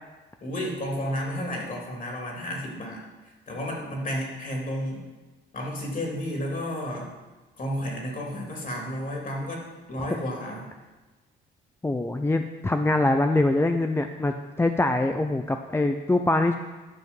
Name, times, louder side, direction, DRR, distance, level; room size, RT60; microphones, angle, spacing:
voice 1, 0.4-3.0 3.5-5.1 5.5-7.1 7.6-9.6 9.9-10.6, equal, 40° left, -1 dB, 3.2 m, -32 dB
voice 2, 11.8-16.6, left 2 dB, 10° left, 6 dB, 0.5 m, -24 dB
12.0 x 5.9 x 5.5 m, 1.2 s
cardioid pair, 90°, 20 cm